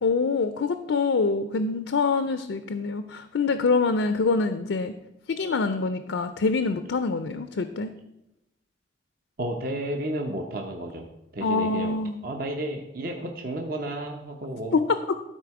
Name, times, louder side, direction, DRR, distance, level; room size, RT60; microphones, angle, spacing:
voice 1, 0.0-4.9 5.3-7.9 11.4-12.2 14.7-15.1, left 4 dB, 85° left, 10 dB, 0.5 m, -25 dB
voice 2, 9.4-11.1 11.3-12.0 12.2-14.8, right 1 dB, 50° right, 2 dB, 0.8 m, -32 dB
12.5 x 4.3 x 4.8 m, 0.91 s
head